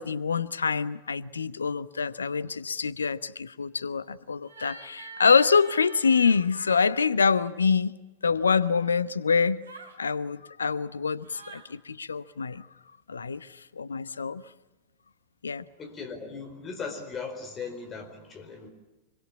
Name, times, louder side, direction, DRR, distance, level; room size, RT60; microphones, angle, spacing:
voice 1, 0.0-8.0 8.2-9.6 10.0-12.7 13.1-13.5 13.8-14.4 15.4-15.6, left 5 dB, 75° left, 0.9 m, -25 dB
sound 1, 4.4-6.4 9.6-10.0 11.2-11.7, right 4 dB, 75° right, 3.5 m, -46 dB
voice 2, 15.8-18.7, left 5 dB, 25° left, 4.5 m, -38 dB
26.0 x 24.5 x 8.6 m
figure-of-eight pair, 90°, 0 cm